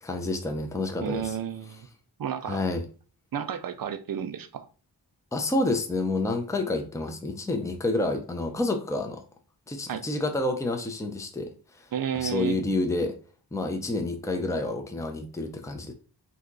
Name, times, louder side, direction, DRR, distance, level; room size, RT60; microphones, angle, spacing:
voice 1, 0.0-1.4 2.5-2.9 5.3-9.2 9.7-11.9 12.2-13.1 13.5-15.9, left 2 dB, 10° left, 5 dB, 0.5 m, -29 dB
voice 2, 1.0-1.9 2.2-2.6 3.3-4.7 9.9-10.0 11.9-12.6, right 8 dB, 55° right, 10 dB, 0.4 m, -32 dB
2.8 x 2.3 x 3.8 m, 0.38 s
wide cardioid pair, 60°, 42 cm